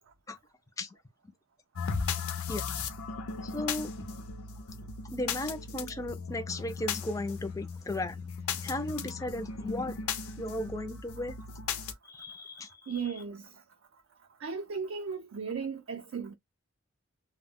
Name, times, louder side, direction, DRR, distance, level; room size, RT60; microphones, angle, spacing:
sound 1, 1.8-11.9, left 5 dB, 75° left, 0.5 m, -37 dB
voice 1, 3.4-3.9 5.1-8.2 8.6-10.0 10.4-11.3 12.0-13.2, left 1 dB, 15° left, 0.3 m, -36 dB
voice 2, 12.9-13.5 14.4-16.3, right 6 dB, 60° right, 0.4 m, -36 dB
2.1 x 2.0 x 3.5 m
head